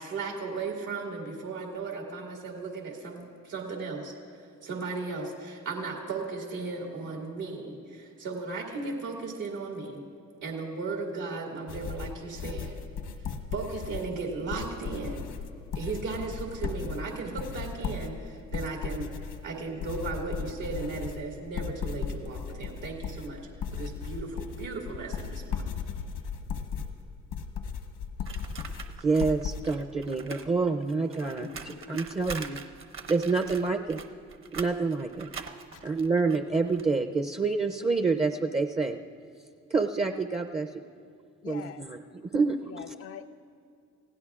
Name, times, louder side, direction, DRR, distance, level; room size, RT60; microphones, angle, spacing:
voice 1, 0.0-4.1 4.6-10.0 10.4-12.8 13.2-15.3 15.7-19.1 19.4-23.5 23.7-25.6, right 4 dB, 80° right, -1 dB, 2.4 m, -36 dB
sound 1, 11.7-29.6, left 6 dB, 80° left, 1.3 m, -36 dB
sound 2, 28.2-30.5 30.7-36.8, right 5 dB, 45° right, 0.9 m, -43 dB
voice 2, 29.0-32.6 33.1-34.0 34.5-35.3 35.8-39.0 39.7-40.7 41.4-42.9, right 4 dB, 20° right, 6 dB, 0.6 m, -28 dB
voice 3, 30.9-32.5 35.7-35.8 41.4-41.9 42.7-43.3, left 8 dB, 50° left, 5 dB, 0.4 m, -45 dB
29.5 x 16.0 x 2.4 m, 2.4 s
cardioid pair, 90°, 30 cm